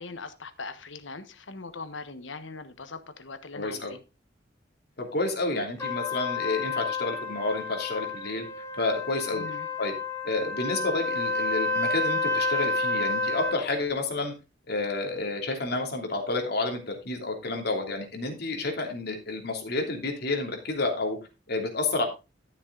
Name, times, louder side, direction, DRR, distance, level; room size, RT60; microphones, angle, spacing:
voice 1, 0.0-4.0 9.3-9.7, left 3 dB, 90° left, 1.2 m, -41 dB
voice 2, 3.5-3.9 5.0-8.5 8.7-9.4 9.8-9.9 10.2-14.3 14.7-21.2 21.5-22.1, left 2 dB, 60° left, 3.1 m, -30 dB
Trumpet, 5.8-13.6, left 2 dB, 15° left, 3.1 m, -30 dB
12.5 x 7.1 x 3.9 m
head